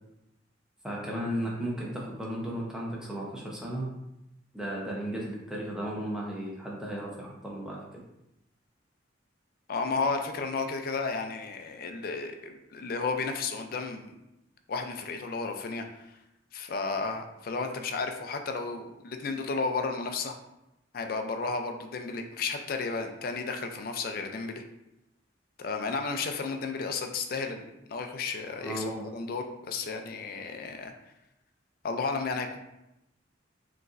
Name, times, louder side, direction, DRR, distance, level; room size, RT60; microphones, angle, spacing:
voice 1, 0.8-3.8 4.5-8.0 28.6-29.1, equal, 5° right, -4 dB, 0.7 m, -35 dB
voice 2, 9.7-14.1 14.7-16.2 16.5-20.3 20.9-24.6 25.6-27.6 27.9-28.8 29.1-30.9 31.8-32.6, left 4 dB, 50° left, 5 dB, 0.4 m, -33 dB
4.8 x 3.0 x 2.5 m, 0.89 s
head